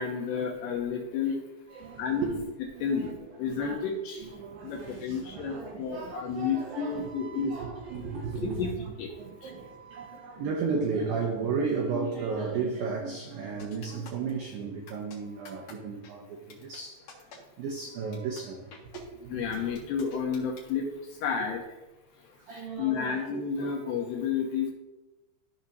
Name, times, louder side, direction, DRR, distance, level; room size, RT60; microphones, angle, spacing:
voice 1, 0.0-1.4 2.0-2.3 2.8-4.3 4.6-7.5 8.4-8.7 9.0-9.1 9.4-9.5 19.3-21.6 22.5-24.7, left 6 dB, 75° left, 2.5 m, -31 dB
voice 2, 1.7-2.4 2.8-3.2 3.5-3.8 4.2-8.9 9.2-17.0 17.6-18.6 18.9-19.4 22.5-23.8, right 5 dB, 85° right, 2.0 m, -34 dB
sound 1, 13.6-14.3 14.9-15.2 15.4-15.7 16.0-16.1 16.5-16.8 17.1-17.4 17.8-17.9 18.1-18.4 18.7-19.0 19.5-20.7, left 5 dB, 55° left, 2.6 m, -48 dB
15.0 x 5.8 x 2.7 m
omnidirectional pair, 5.5 m